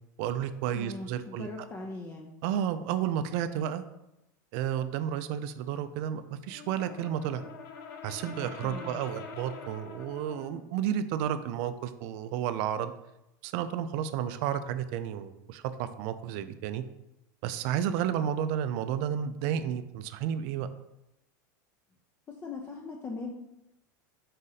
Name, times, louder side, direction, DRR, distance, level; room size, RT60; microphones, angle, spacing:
voice 1, 0.2-1.5 2.4-3.8 4.5-7.4 8.0-12.9 13.4-16.8 17.4-20.7, right 9 dB, 55° right, 11 dB, 0.4 m, -32 dB
voice 2, 0.7-2.3 8.6-9.0 22.3-23.3, left 3 dB, 25° left, 0 dB, 0.5 m, -40 dB
Brass instrument, 6.5-10.6, left 6 dB, 70° left, 0.6 m, -45 dB
4.1 x 2.6 x 4.0 m, 0.90 s
hypercardioid pair, 105°, 10 cm